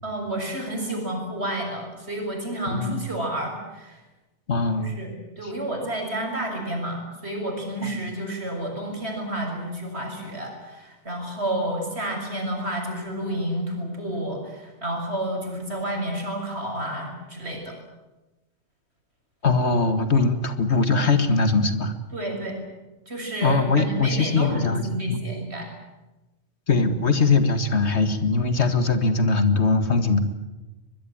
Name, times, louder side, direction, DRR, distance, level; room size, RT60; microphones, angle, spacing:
voice 1, 0.0-4.0 4.8-5.1 5.4-17.8 22.1-22.5 23.1-25.7, right 1 dB, 65° right, 2 dB, 7.1 m, -30 dB
voice 2, 2.7-3.0 4.5-4.9 7.8-8.0 19.4-21.9 23.4-24.8 25.1-25.2 26.7-30.2, left 3 dB, 70° left, 9 dB, 2.2 m, -21 dB
24.0 x 21.5 x 8.9 m, 1.1 s
omnidirectional pair, 1.2 m